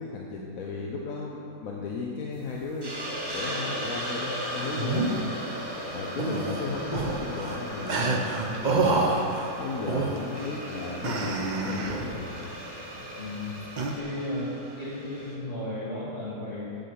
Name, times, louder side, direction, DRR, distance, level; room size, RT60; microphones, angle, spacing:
voice 1, 0.0-3.0 3.3-5.3 5.9-8.1 8.6-12.5 13.0-13.1 13.8-13.9, left 4 dB, 55° left, -2 dB, 1.1 m, -35 dB
Hiss, 2.8-15.3, equal, 15° right, 1.0 m, -37 dB
sound 1, 4.5-5.2 6.2-7.6 7.9-9.5 9.8-10.3 11.0-12.2 13.8-14.0, right 3 dB, 70° right, 0.4 m, -28 dB
voice 2, 13.2-13.5 13.9-16.7, left 1 dB, 30° left, -14 dB, 3.0 m, -35 dB
8.8 x 5.6 x 7.6 m, 2.7 s
omnidirectional pair, 2.0 m